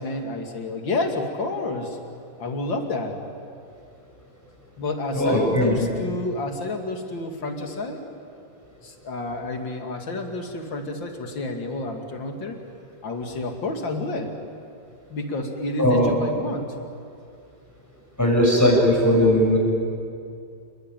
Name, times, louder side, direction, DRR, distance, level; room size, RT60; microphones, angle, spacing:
voice 1, 0.0-2.0 2.4-3.2 4.8-8.0 8.8-12.6 13.0-14.3 15.1-16.7, left 2 dB, 70° left, 4 dB, 3.2 m, -29 dB
voice 2, 5.1-5.9 15.8-16.1 18.2-19.6, equal, 10° left, -3 dB, 7.7 m, -18 dB
28.5 x 21.5 x 9.2 m, 2.4 s
omnidirectional pair, 2.1 m